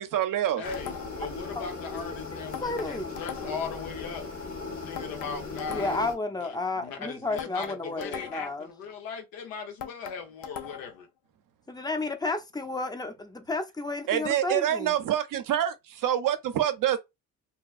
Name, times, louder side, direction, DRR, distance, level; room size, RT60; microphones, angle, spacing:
voice 1, 0.0-0.6 14.1-17.0, right 11 dB, 70° right, 0.6 m, -26 dB
voice 2, 0.6-4.2 4.7-6.0 6.4-11.1, left 5 dB, 85° left, 0.8 m, -39 dB
sound 1, 0.6-6.1, left 4 dB, 40° left, 1.3 m, -38 dB
sound 2, 0.7-1.3 2.5-3.8 5.0-6.2 7.4-8.6 9.8-11.0, left 8 dB, 65° left, 0.5 m, -41 dB
voice 3, 2.6-3.1 5.7-8.7 11.7-14.9, left 2 dB, 10° left, 0.6 m, -32 dB
2.9 x 2.3 x 2.4 m
supercardioid pair, 65°, 34 cm